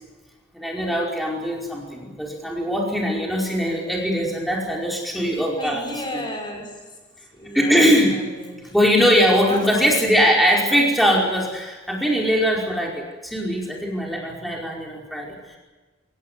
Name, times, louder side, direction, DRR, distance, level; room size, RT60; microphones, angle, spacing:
voice 1, 0.5-6.2 7.5-8.2 8.7-15.3, equal, ahead, -2 dB, 5.0 m, -21 dB
voice 2, 5.6-7.0 7.3-8.7 9.5-10.1, left 1 dB, 25° left, 2 dB, 5.1 m, -33 dB
27.0 x 17.5 x 9.8 m, 1.3 s
head